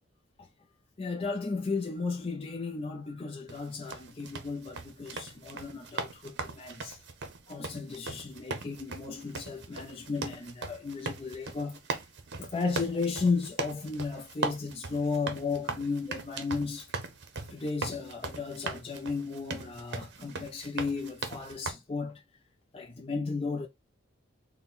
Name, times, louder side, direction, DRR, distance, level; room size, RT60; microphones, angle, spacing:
voice 1, 1.0-7.0 7.5-11.8 12.4-16.9 17.5-22.2 22.7-23.7, left 4 dB, 30° left, 0.4 m, -34 dB
sound 1, 3.5-21.7, right 3 dB, 60° right, 0.7 m, -39 dB
4.2 x 2.1 x 3.6 m
head